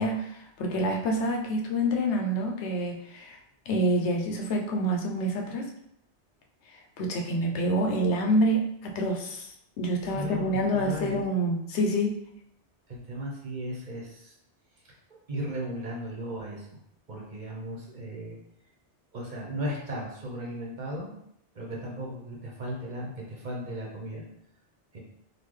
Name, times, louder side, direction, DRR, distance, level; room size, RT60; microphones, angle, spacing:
voice 1, 0.0-3.4 3.7-5.7 7.0-12.2, equal, 80° left, 1 dB, 0.9 m, -27 dB
voice 2, 10.0-11.2 12.9-14.3 15.3-16.7 17.1-18.4 19.1-21.1 21.5-24.2 24.9-25.0, equal, 45° right, -3 dB, 0.9 m, -36 dB
3.9 x 2.4 x 3.1 m, 0.73 s
omnidirectional pair, 1.1 m